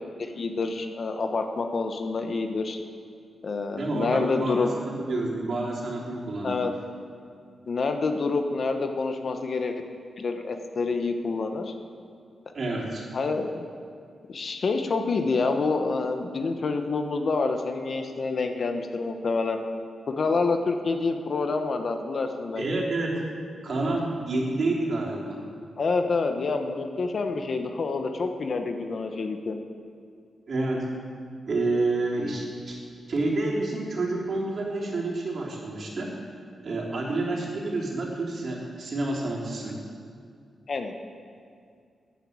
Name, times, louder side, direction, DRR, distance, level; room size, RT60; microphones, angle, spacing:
voice 1, 0.2-2.8 3.4-4.7 6.4-6.7 7.7-9.8 10.2-11.7 13.1-13.6 14.3-19.6 20.1-22.6 25.8-29.6 40.7-40.9, left 4 dB, 50° left, 6 dB, 1.1 m, -27 dB
voice 2, 3.7-6.7 12.5-13.0 22.6-23.2 23.6-25.4 30.5-30.9 31.5-32.8 33.1-36.1 36.6-39.8, right 2 dB, 50° right, -3 dB, 3.5 m, -29 dB
13.5 x 10.5 x 8.7 m, 2.2 s
wide cardioid pair, 120°, 0 cm